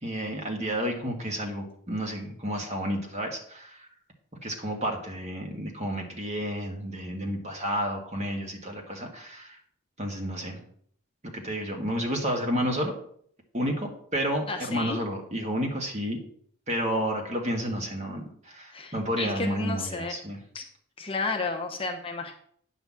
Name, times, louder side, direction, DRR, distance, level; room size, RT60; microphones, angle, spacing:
voice 1, 0.0-3.8 4.4-9.6 10.0-10.6 11.3-13.0 13.5-16.2 16.7-20.4, equal, 30° right, 2 dB, 1.6 m, -31 dB
voice 2, 14.5-15.0 18.7-20.1 20.5-20.7 21.0-22.3, left 3 dB, 25° left, 2 dB, 0.9 m, -32 dB
9.3 x 4.0 x 7.3 m, 0.62 s
head